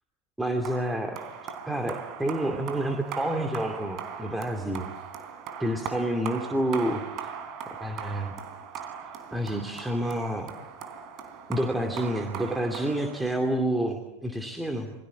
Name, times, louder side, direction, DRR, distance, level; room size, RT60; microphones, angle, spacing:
voice 1, 0.4-1.2 1.7-4.8 5.6-7.0 7.7-8.3 9.3-10.5 11.5-14.9, right 1 dB, 5° right, 4 dB, 2.6 m, -29 dB
sound 1, 0.6-13.7, right 7 dB, 35° right, 3.6 m, -39 dB
28.5 x 22.5 x 8.3 m, 0.98 s
figure-of-eight pair, 90°, 0 cm